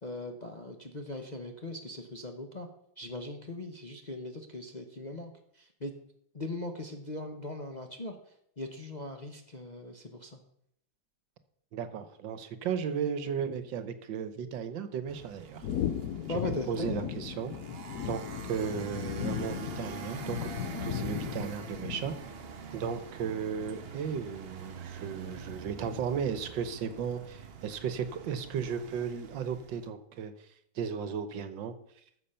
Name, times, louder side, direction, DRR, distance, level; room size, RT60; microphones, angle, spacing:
voice 1, 0.0-2.7 3.0-5.3 5.6-5.9 6.3-8.1 8.6-10.4 16.3-17.1, left 2 dB, 35° left, 4 dB, 0.8 m, -39 dB
voice 2, 11.7-15.6 16.3-17.5 18.1-18.2 18.5-22.1 22.7-30.3 30.7-31.7, right 7 dB, 75° right, 11 dB, 1.6 m, -35 dB
sound 1, 15.1-29.9, right 6 dB, 50° right, 0.7 m, -45 dB
sound 2, 15.6-22.4, left 10 dB, 65° left, 1.0 m, -36 dB
14.0 x 7.3 x 5.6 m, 0.72 s
omnidirectional pair, 2.1 m